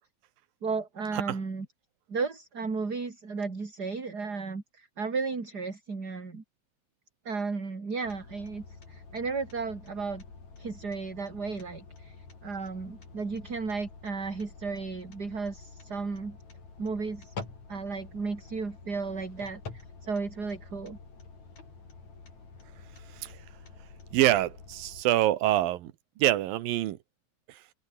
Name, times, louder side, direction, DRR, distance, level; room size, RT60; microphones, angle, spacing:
voice 1, 0.6-1.6 2.1-6.4 7.2-10.2 10.6-12.1 12.4-16.4 16.8-17.3 17.7-19.6 20.0-21.0, right 4 dB, 25° right, 3.6 m, -34 dB
sound 1, 8.0-25.0, left 4 dB, 50° left, 6.7 m, -48 dB
voice 2, 24.1-25.9 26.2-27.0, right 14 dB, 75° right, 2.8 m, -25 dB
omnidirectional pair, 4.3 m